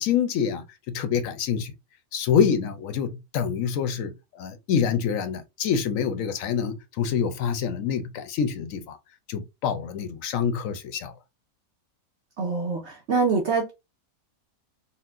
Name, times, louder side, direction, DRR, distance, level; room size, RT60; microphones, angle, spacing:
voice 1, 0.0-1.7 2.1-9.0 9.3-11.1, left 7 dB, 70° left, 0.9 m, -26 dB
voice 2, 12.4-13.7, right 4 dB, 55° right, 0.9 m, -25 dB
4.1 x 2.1 x 2.4 m
omnidirectional pair, 1.5 m